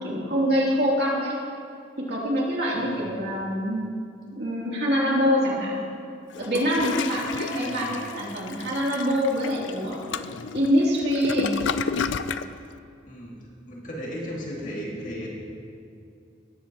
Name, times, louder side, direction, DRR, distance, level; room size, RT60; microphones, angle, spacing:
voice 1, 0.0-1.3 2.1-3.8 4.3-5.8 6.4-10.0 10.5-11.5, equal, 60° right, -5 dB, 3.0 m, -25 dB
voice 2, 2.7-3.2 7.5-8.0 13.1-13.3 13.7-15.3, equal, 45° left, -3 dB, 2.3 m, -35 dB
Toilet flush, 6.3-12.5, left 5 dB, 75° left, 0.4 m, -31 dB
18.0 x 13.0 x 3.0 m, 2.4 s
head